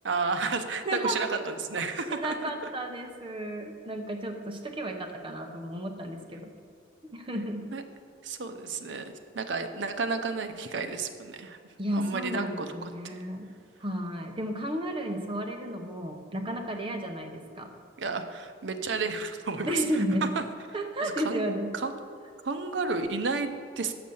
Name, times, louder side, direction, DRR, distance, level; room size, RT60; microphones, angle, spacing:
voice 1, 0.0-2.5 7.7-7.8 8.2-11.6 11.9-13.2 18.0-20.4 21.0-21.5 21.7-21.9 22.4-23.9, right 4 dB, 70° right, 7 dB, 0.6 m, -32 dB
voice 2, 0.8-1.2 2.1-6.5 7.1-7.7 11.8-13.5 13.8-17.7 19.6-20.3 20.7-21.7, equal, 30° right, 4 dB, 0.8 m, -33 dB
6.4 x 6.0 x 7.0 m, 2.3 s
head